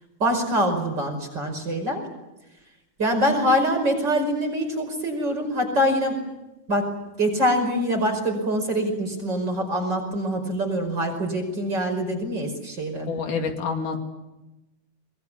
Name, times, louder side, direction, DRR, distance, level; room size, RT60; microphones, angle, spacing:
voice 1, 0.2-2.0 3.0-6.3 6.7-13.1, equal, 35° right, 4 dB, 5.8 m, -24 dB
voice 2, 13.1-14.0, left 5 dB, 80° left, 4 dB, 4.1 m, -27 dB
24.0 x 21.5 x 9.8 m, 1.0 s
omnidirectional pair, 3.6 m